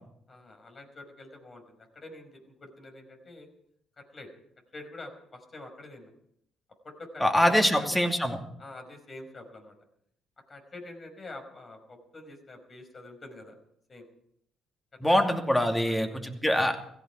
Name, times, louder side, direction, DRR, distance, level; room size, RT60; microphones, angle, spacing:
voice 1, 0.3-3.5 4.0-4.3 4.7-6.1 6.8-7.9 8.6-9.7 10.5-13.5 13.9-14.1 15.1-15.4 15.6-16.2, left 2 dB, 40° left, 5 dB, 5.0 m, -46 dB
voice 2, 7.2-8.4 15.0-16.8, equal, 10° left, 4 dB, 2.7 m, -24 dB
16.5 x 16.5 x 4.7 m, 0.71 s
supercardioid pair, 65°, 0 cm